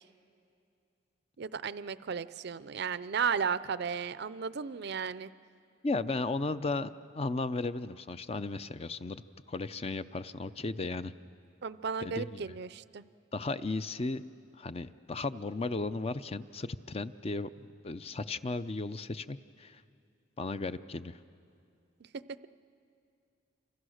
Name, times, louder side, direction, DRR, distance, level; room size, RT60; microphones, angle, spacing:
voice 1, 1.4-5.3 11.6-13.0, right 6 dB, 55° right, 16 dB, 0.5 m, -34 dB
voice 2, 5.8-9.2 9.5-11.1 12.0-12.6 13.3-14.2 14.6-19.8 20.4-21.2, left 3 dB, 30° left, 12 dB, 0.5 m, -35 dB
27.5 x 25.5 x 6.4 m, 2.5 s
head